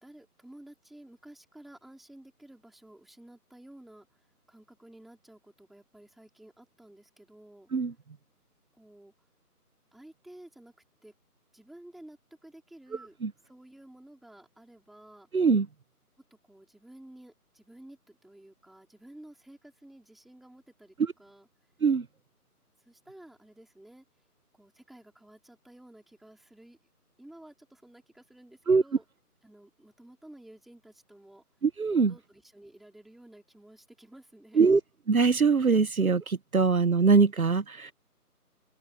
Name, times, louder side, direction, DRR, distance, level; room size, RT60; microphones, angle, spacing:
voice 1, 0.0-7.7 8.8-9.1 9.9-10.7 11.0-11.1 11.5-13.2 13.4-15.5 16.3-21.5 22.8-24.1 24.5-26.8 27.2-29.1 29.4-31.4 31.9-34.7, right 1 dB, ahead, 3.7 m, -53 dB
voice 2, 15.3-15.6 21.8-22.0 28.7-28.8 31.6-32.1 34.6-34.8 35.1-37.9, right 4 dB, 65° right, 1.1 m, -22 dB
open air
figure-of-eight pair, 175°, 47 cm